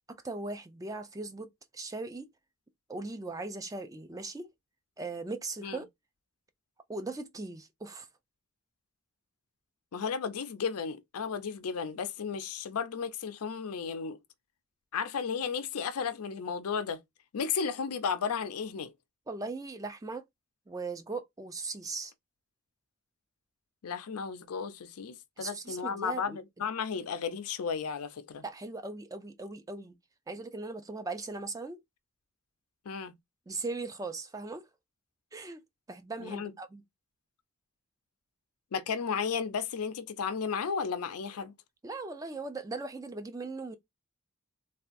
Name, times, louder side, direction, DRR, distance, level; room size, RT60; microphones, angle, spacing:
voice 1, 0.1-2.3 2.9-4.5 5.0-5.9 6.9-8.1 19.3-20.2 20.7-22.1 25.4-26.4 28.4-29.9 30.3-31.8 33.5-34.6 35.3-35.6 35.9-36.8 41.8-43.7, right 3 dB, 15° right, 0.3 m, -39 dB
voice 2, 9.9-14.2 14.9-17.0 17.3-18.9 23.8-28.4 32.9-33.1 36.2-36.5 38.7-41.5, left 6 dB, 90° left, 0.5 m, -34 dB
3.3 x 2.3 x 2.5 m
head